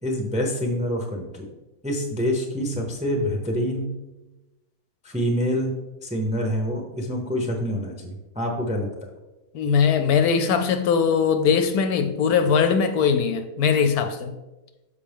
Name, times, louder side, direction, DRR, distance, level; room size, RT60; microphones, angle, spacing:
voice 1, 0.0-1.5 1.8-3.9 5.0-5.7 6.0-8.9, equal, 10° right, 0.5 m, -26 dB
voice 2, 9.5-14.4, left 6 dB, 75° left, 1.0 m, -21 dB
6.8 x 5.2 x 3.5 m
omnidirectional pair, 1.8 m